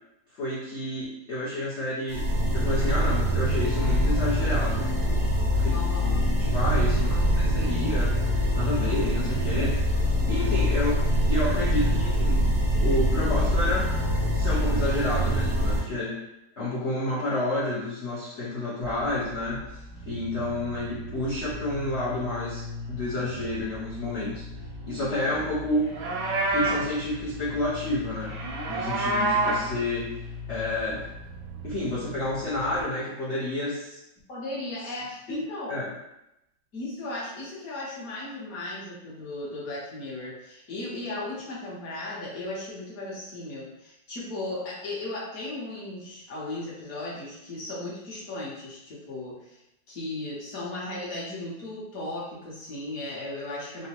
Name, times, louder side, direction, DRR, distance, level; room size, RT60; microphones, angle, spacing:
voice 1, 0.4-2.2 2.5-4.9 5.5-5.7 6.4-8.1 8.5-9.8 10.3-11.0 11.3-12.5 12.8-13.9 14.3-16.2 16.6-19.8 20.1-24.4 24.8-25.9 26.5-28.3 28.7-30.1 30.5-31.0 31.6-34.0 35.7-35.9, left 1 dB, 70° left, -7 dB, 0.6 m, -29 dB
sound 1, 2.1-15.8, equal, 65° right, 0.6 m, -24 dB
voice 2, 5.7-6.3 25.1-25.4 34.3-35.8 36.7-49.6 49.9-53.9, left 2 dB, 55° left, -6 dB, 1.2 m, -36 dB
sound 2, 18.8-32.8, left 1 dB, 25° right, 0.3 m, -40 dB
Livestock farm animals working animals, 25.8-26.9 28.2-29.7, right 2 dB, 90° right, 1.4 m, -27 dB
3.8 x 2.2 x 2.8 m, 0.86 s
omnidirectional pair, 2.1 m